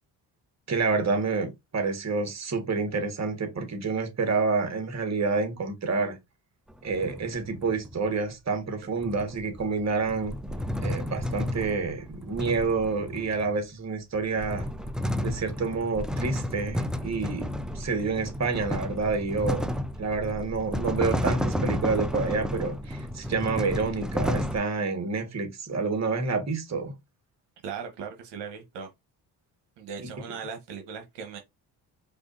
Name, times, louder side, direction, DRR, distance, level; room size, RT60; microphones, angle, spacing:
voice 1, 0.7-6.2 6.8-10.4 10.8-14.7 15.2-17.5 17.7-26.9, right 4 dB, 40° right, 1.5 m, -28 dB
sound 1, 6.7-8.0 9.0-13.6 14.1-24.6, left 1 dB, ahead, 0.4 m, -32 dB
voice 2, 27.6-28.9 29.8-31.4, right 6 dB, 75° right, 1.0 m, -38 dB
4.8 x 2.4 x 2.5 m
supercardioid pair, 60°, 43 cm